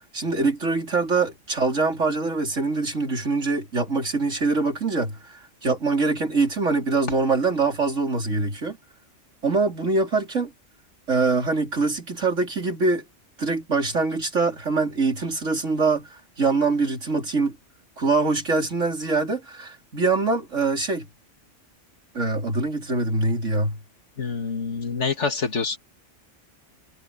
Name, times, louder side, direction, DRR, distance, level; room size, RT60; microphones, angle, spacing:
voice 1, 0.1-8.8 9.4-10.5 11.1-13.0 13.4-17.6 18.0-21.1 22.1-23.8, right 3 dB, 80° right, 4.4 m, -24 dB
voice 2, 24.2-25.8, left 4 dB, 70° left, 2.4 m, -26 dB
omnidirectional pair, 1.3 m